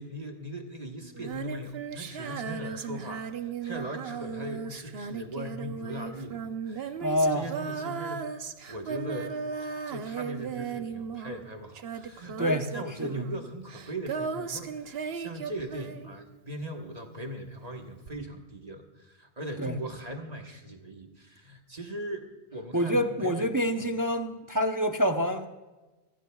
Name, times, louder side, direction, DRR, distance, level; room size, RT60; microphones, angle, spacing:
voice 1, 0.0-8.4 8.7-9.3 9.6-23.5, right 1 dB, 35° right, 3 dB, 1.5 m, -39 dB
Female singing, 1.1-16.5 18.1-18.2, right 6 dB, 65° right, 1.0 m, -36 dB
voice 2, 7.0-7.5 12.4-12.7 13.0-13.2 19.6-19.8 22.7-25.5, equal, 20° right, 5 dB, 0.7 m, -27 dB
27.0 x 15.5 x 2.3 m, 1.2 s
omnidirectional pair, 1.1 m